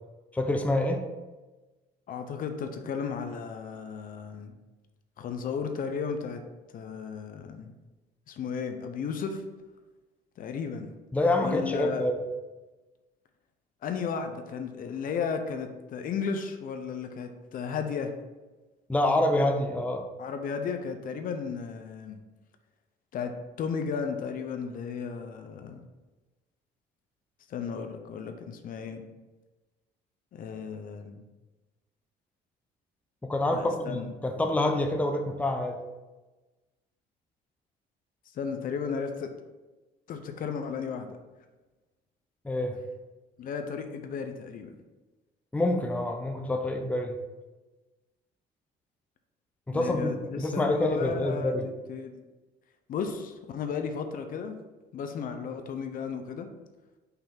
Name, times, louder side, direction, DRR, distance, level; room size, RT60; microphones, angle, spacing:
voice 1, 0.3-1.0 11.1-12.2 18.9-20.0 33.2-35.8 42.4-42.8 45.5-47.2 49.7-51.7, left 1 dB, 10° left, 4 dB, 0.6 m, -27 dB
voice 2, 2.1-4.5 5.2-6.4 6.7-7.7 8.3-9.4 10.4-11.0 11.4-12.1 13.8-18.2 20.2-22.2 23.1-25.9 27.5-29.1 30.3-31.2 33.5-34.1 38.3-39.3 40.1-41.2 43.4-44.8 49.7-52.2 52.9-54.6 54.9-56.5, left 6 dB, 55° left, 6 dB, 0.7 m, -34 dB
5.7 x 3.4 x 5.7 m, 1.2 s
cardioid pair, 110°, 17 cm